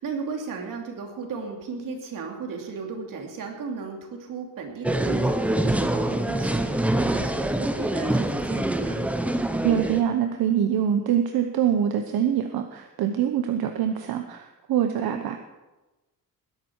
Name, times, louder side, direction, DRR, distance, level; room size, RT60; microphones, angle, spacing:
voice 1, 0.0-9.1 15.1-15.3, right 5 dB, 65° right, 2 dB, 3.0 m, -35 dB
sound 1, 4.8-10.0, right 1 dB, 5° right, 0.6 m, -25 dB
voice 2, 9.6-15.4, right 9 dB, 80° right, 6 dB, 1.1 m, -24 dB
20.5 x 11.0 x 4.7 m, 1.1 s
wide cardioid pair, 180°, 35 cm